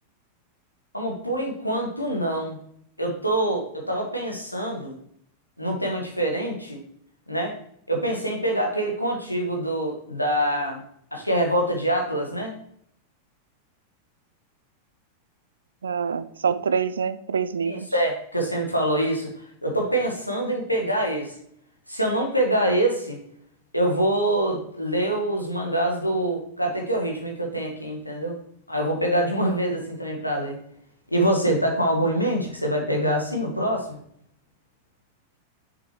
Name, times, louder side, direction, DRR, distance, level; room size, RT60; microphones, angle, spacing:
voice 1, 0.9-2.6 3.0-5.0 5.6-6.8 7.3-7.6 7.9-10.8 11.1-12.5 17.6-19.3 19.6-21.3 21.9-23.2 23.7-28.4 28.7-30.6 31.1-34.0, right 1 dB, 85° left, 1 dB, 1.6 m, -25 dB
voice 2, 15.8-17.9, right 6 dB, 70° right, 14 dB, 0.4 m, -26 dB
6.9 x 6.4 x 3.1 m, 0.68 s
figure-of-eight pair, 90°, 0 cm